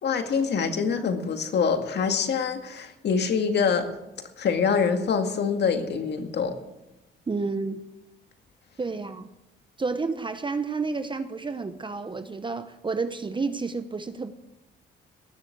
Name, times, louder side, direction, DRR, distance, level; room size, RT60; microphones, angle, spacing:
voice 1, 0.0-3.9 4.4-6.6, left 6 dB, 60° left, 6 dB, 2.0 m, -25 dB
voice 2, 7.3-7.9 8.8-9.3 9.8-14.3, right 4 dB, 25° right, 10 dB, 0.9 m, -30 dB
18.5 x 7.2 x 8.2 m, 0.93 s
cardioid pair, 90°, 20 cm